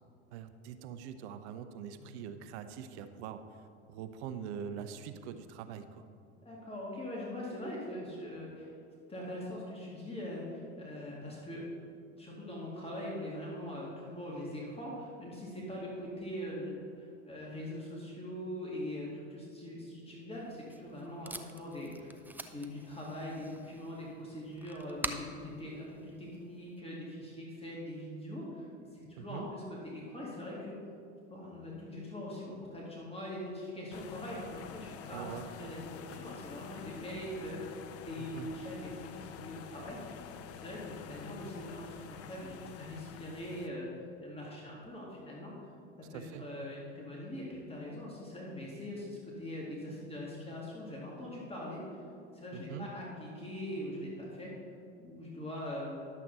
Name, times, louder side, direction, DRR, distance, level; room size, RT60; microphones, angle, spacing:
voice 1, 0.3-6.1 29.2-29.5 35.1-35.5 38.2-38.5 46.1-46.5 52.5-52.9, right 8 dB, 70° right, 10 dB, 0.7 m, -43 dB
voice 2, 6.4-8.7 9.1-11.7 12.2-22.2 22.5-28.7 28.9-30.8 31.3-37.8 38.1-40.2 40.5-43.9 44.2-45.5 46.1-52.0 52.3-54.5 55.0-56.1, left 1 dB, 15° left, -4 dB, 2.3 m, -42 dB
Packing tape duct tape, 20.3-26.8, right 2 dB, 5° right, 0.5 m, -46 dB
sound 1, 33.9-43.7, left 8 dB, 45° left, 0.7 m, -48 dB
11.0 x 7.5 x 4.1 m, 2.4 s
hypercardioid pair, 75°, 35 cm